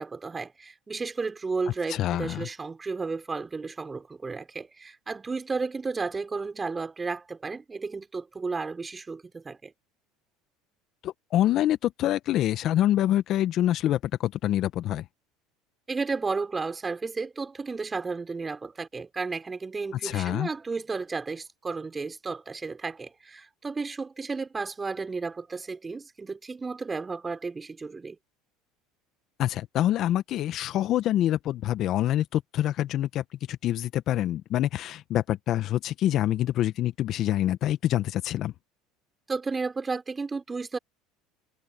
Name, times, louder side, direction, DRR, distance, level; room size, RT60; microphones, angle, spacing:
voice 1, 0.0-9.7 15.9-28.2 39.3-40.8, right 4 dB, 20° right, 5.4 m, -33 dB
voice 2, 1.9-2.5 11.0-15.0 20.0-20.5 29.4-38.5, left 13 dB, 55° left, 1.4 m, -26 dB
hypercardioid pair, 85°, 0 cm